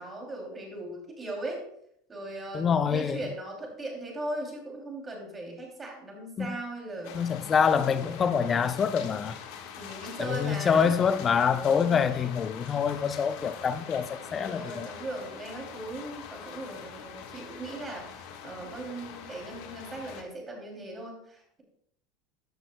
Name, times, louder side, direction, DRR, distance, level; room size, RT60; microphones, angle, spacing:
voice 1, 0.0-1.6 2.1-7.2 7.8-8.7 9.7-10.9 11.5-12.0 13.4-13.5 13.9-21.6, right 1 dB, 20° right, 2.8 m, -39 dB
voice 2, 2.5-3.2 6.4-6.6 7.1-9.4 10.2-14.9, left 6 dB, 25° left, 0.5 m, -26 dB
sound 1, 7.0-20.2, left 7 dB, 65° left, 1.4 m, -44 dB
14.5 x 6.3 x 2.2 m
supercardioid pair, 135°, 0 cm